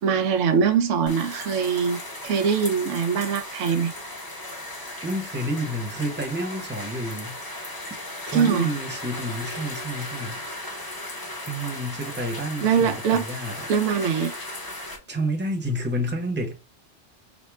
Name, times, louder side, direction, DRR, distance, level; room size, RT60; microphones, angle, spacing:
voice 1, 0.0-3.9 8.3-8.7 12.6-13.2 13.7-14.3, right 6 dB, 90° right, 0.9 m, -22 dB
sound 1, 1.1-15.0, left 1 dB, 20° left, 0.7 m, -36 dB
voice 2, 5.0-7.4 8.3-10.5 11.5-13.7 15.1-16.5, equal, 10° right, 0.8 m, -29 dB
4.9 x 2.1 x 3.4 m
omnidirectional pair, 1.2 m